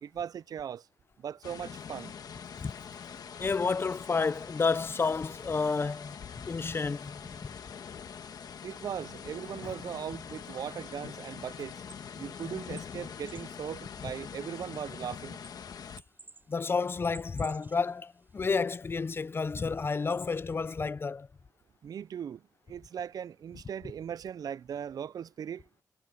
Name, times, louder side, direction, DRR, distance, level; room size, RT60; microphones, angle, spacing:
voice 1, 0.0-0.9 1.2-2.1 8.6-11.8 12.2-15.4 21.8-22.4 22.7-25.7, right 8 dB, 65° right, 0.4 m, -39 dB
sound 1, 1.4-16.0, left 7 dB, 70° left, 1.3 m, -44 dB
Bowed string instrument, 1.8-13.6, left 2 dB, 15° left, 2.0 m, -63 dB
voice 2, 3.4-7.5 9.6-9.7 16.5-21.3, left 4 dB, 35° left, 0.5 m, -30 dB
sound 2, 11.7-20.9, right 3 dB, 30° right, 4.2 m, -57 dB
wide cardioid pair, 115°, 7 cm